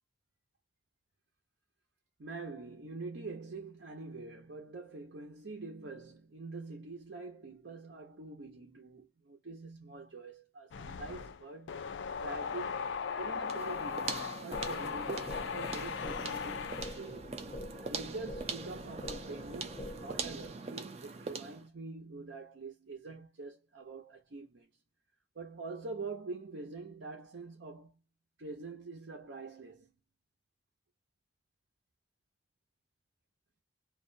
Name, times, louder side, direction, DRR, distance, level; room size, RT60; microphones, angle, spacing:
voice 1, 2.2-11.9 12.2-17.3 17.9-24.7 25.3-28.0 28.4-29.9, right 3 dB, 85° right, 0.7 m, -45 dB
sound 1, 10.7-17.0, left 6 dB, 90° left, 0.4 m, -38 dB
sound 2, 13.5-21.7, right 4 dB, 35° right, 0.4 m, -42 dB
sound 3, 14.5-20.5, left 1 dB, 25° left, 0.5 m, -46 dB
2.4 x 2.2 x 2.5 m
head